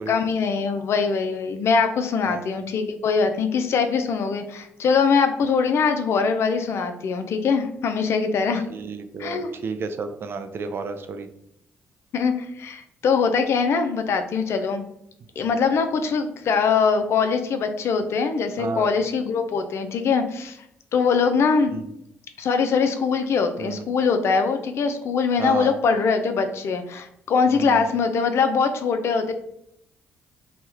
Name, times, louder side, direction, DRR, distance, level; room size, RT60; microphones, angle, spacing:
voice 1, 0.1-8.6 9.2-9.5 12.1-14.8 15.4-20.6 20.9-21.7 22.4-29.3, left 5 dB, 65° left, 7 dB, 0.4 m, -22 dB
voice 2, 8.7-11.3 15.4-15.5 18.6-18.9 21.7-21.8 23.6-23.8 25.4-25.7 27.5-27.9, right 4 dB, 50° right, 8 dB, 0.4 m, -32 dB
2.9 x 2.3 x 3.2 m, 0.74 s
supercardioid pair, 55°, 5 cm